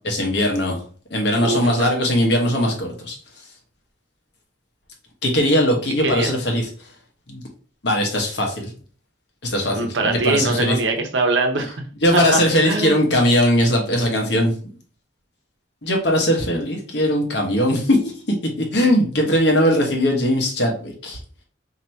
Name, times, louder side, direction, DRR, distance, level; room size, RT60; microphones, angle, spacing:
voice 1, 0.0-0.8 1.1-3.2 5.2-6.7 7.3-7.4 7.8-8.7 9.4-10.8 12.0-14.5 15.8-21.2, equal, 65° left, 1 dB, 1.1 m, -20 dB
voice 2, 1.4-1.9 6.0-6.3 9.8-11.8 12.1-13.1, right 3 dB, 85° right, 4 dB, 0.8 m, -23 dB
2.9 x 2.8 x 4.4 m, 0.42 s
head